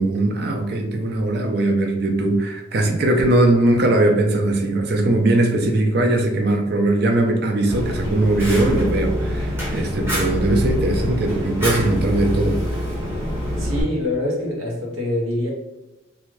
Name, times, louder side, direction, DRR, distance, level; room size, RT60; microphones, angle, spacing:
voice 1, 0.0-12.8, right 2 dB, 55° right, 4 dB, 0.4 m, -20 dB
Fire, 7.7-13.8, equal, 10° right, 0.6 m, -25 dB
voice 2, 13.6-15.5, left 1 dB, 90° right, -3 dB, 1.0 m, -24 dB
2.5 x 2.4 x 3.1 m, 1.0 s
head